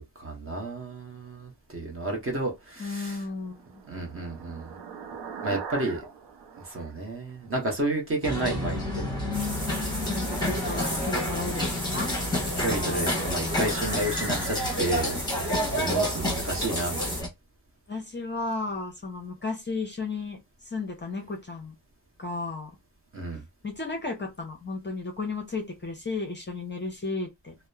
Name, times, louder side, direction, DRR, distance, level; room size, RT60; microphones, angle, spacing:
voice 1, 0.0-3.2 3.9-4.7 5.4-6.1 6.6-9.0 10.6-10.8 12.5-15.5 15.7-17.3 23.1-23.4, right 2 dB, 30° right, 0.9 m, -31 dB
voice 2, 2.8-3.6 10.1-12.1 12.7-14.5 17.9-20.4 20.6-21.7 22.2-22.7 23.6-27.5, left 3 dB, 25° left, 0.6 m, -34 dB
sound 1, 3.2-7.8, right 6 dB, 70° right, 0.6 m, -42 dB
sound 2, 8.2-17.3, left 1 dB, 10° left, 1.0 m, -29 dB
sound 3, 9.3-17.2, equal, 10° right, 1.3 m, -35 dB
2.8 x 2.0 x 2.3 m
wide cardioid pair, 135°, 43 cm